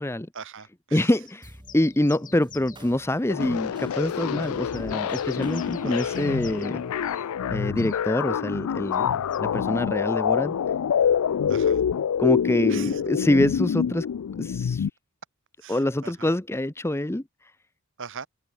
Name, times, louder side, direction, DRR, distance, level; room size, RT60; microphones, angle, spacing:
voice 1, 0.3-1.1 5.8-6.2 11.5-11.8 12.7-13.0 15.6-16.3 18.0-18.3, right 6 dB, 60° right, 1.7 m, -41 dB
voice 2, 0.9-6.8 7.5-10.6 12.2-14.1 14.4-14.9 15.7-17.2, left 1 dB, 10° left, 0.8 m, -25 dB
sound 1, 1.3-2.9 3.7-3.8 4.3-6.8 7.0-7.3 7.8-8.0 8.8-9.4, left 10 dB, 40° left, 4.0 m, -48 dB
sound 2, 1.4-10.1, right 2 dB, 20° right, 4.9 m, -48 dB
sound 3, 3.3-14.9, left 8 dB, 70° left, 0.4 m, -26 dB
open air
head